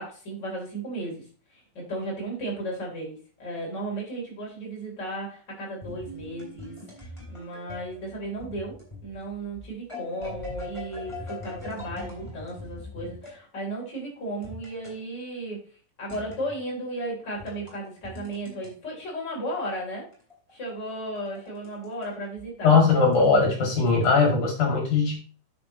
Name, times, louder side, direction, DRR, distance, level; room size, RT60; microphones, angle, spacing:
voice 1, 0.0-8.8 9.0-15.6 16.0-20.1 20.5-22.8, right 1 dB, 30° left, -3 dB, 4.2 m, -35 dB
sound 1, 5.8-13.4 14.4-15.0 16.1-16.5 17.3-18.7 20.1-22.1 22.4-22.5 23.1-24.1, left 2 dB, 10° left, 3.4 m, -41 dB
voice 2, 22.6-25.1, left 4 dB, 60° left, 0 dB, 3.8 m, -20 dB
9.5 x 7.2 x 3.1 m, 0.42 s
omnidirectional pair, 4.1 m